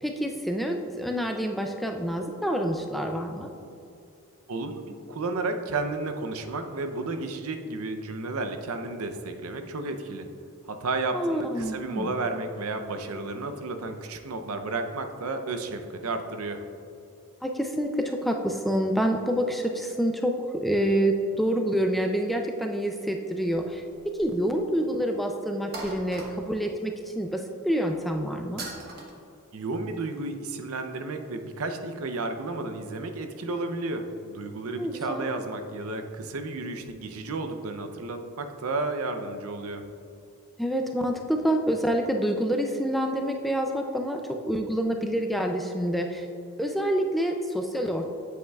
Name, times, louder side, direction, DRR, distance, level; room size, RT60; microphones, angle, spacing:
voice 1, 0.0-3.5 11.1-12.1 17.4-20.3 20.6-23.8 24.1-28.6 34.8-35.3 40.6-44.2 44.5-46.3 46.6-48.1, equal, ahead, 3 dB, 0.3 m, -27 dB
voice 2, 4.5-10.3 10.7-16.6 29.5-39.8, right 3 dB, 80° right, 7 dB, 0.6 m, -32 dB
sound 1, 23.6-24.4 24.7-24.8 25.7-26.7 28.6-29.1, right 2 dB, 45° right, 1.0 m, -39 dB
8.3 x 7.9 x 2.4 m, 2.6 s
head